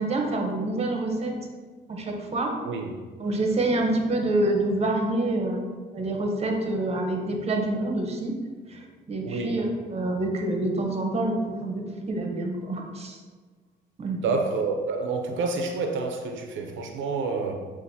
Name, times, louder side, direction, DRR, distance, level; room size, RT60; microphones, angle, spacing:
voice 1, 0.0-1.4 1.9-2.5 3.2-5.6 5.9-8.3 8.7-13.2 14.0-14.3, right 2 dB, 30° right, 1 dB, 0.8 m, -27 dB
voice 2, 9.2-9.5 14.2-17.5, right 4 dB, 75° right, 4 dB, 0.5 m, -28 dB
7.0 x 2.5 x 2.7 m, 1.5 s
cardioid pair, 90°, 20 cm